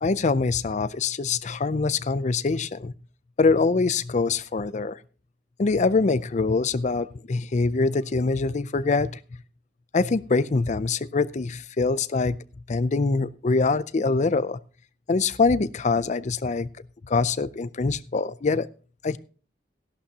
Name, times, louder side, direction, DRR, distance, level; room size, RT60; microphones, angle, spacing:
voice 1, 0.0-2.9 3.4-5.0 5.6-9.1 9.9-12.4 12.7-14.6 15.1-16.7 17.1-18.7 19.0-19.2, left 4 dB, 40° left, 0.5 m, -24 dB
15.0 x 11.5 x 2.9 m
head